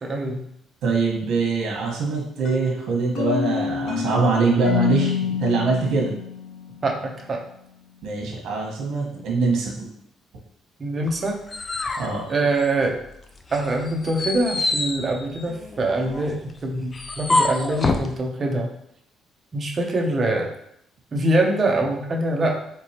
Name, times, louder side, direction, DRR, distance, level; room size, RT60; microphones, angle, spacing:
voice 1, 0.0-0.5 6.8-7.4 10.8-11.4 12.3-13.0 13.5-18.7 19.5-20.5 21.1-22.6, right 2 dB, 30° right, 1 dB, 0.7 m, -24 dB
voice 2, 0.8-6.1 8.0-9.9 12.0-12.2, right 4 dB, 70° right, -1 dB, 1.3 m, -23 dB
sound 1, 2.4-7.1, left 6 dB, 60° left, 0.7 m, -27 dB
sound 2, 11.1-13.1 13.5-18.1, left 2 dB, 20° left, 0.4 m, -27 dB
4.5 x 4.0 x 2.9 m, 0.72 s
cardioid pair, 155°, 0 cm